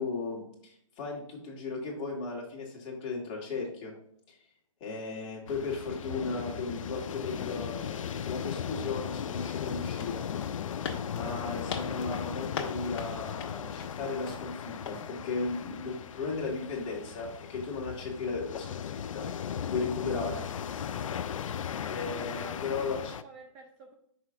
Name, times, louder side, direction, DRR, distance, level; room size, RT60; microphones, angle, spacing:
voice 1, 0.0-3.9 4.3-4.4 4.8-10.6 11.1-19.3 19.7-20.4 21.8-23.2, left 4 dB, 25° left, -1 dB, 1.7 m, -36 dB
sound 1, 5.5-23.2, left 8 dB, 70° left, 0.4 m, -37 dB
sound 2, 9.7-14.5 14.9-15.1, left 5 dB, 50° left, 1.2 m, -41 dB
voice 2, 21.5-21.9 22.4-23.9, right 3 dB, 25° right, 3 dB, 0.6 m, -53 dB
6.0 x 4.9 x 3.6 m, 0.69 s
hypercardioid pair, 145°, 17 cm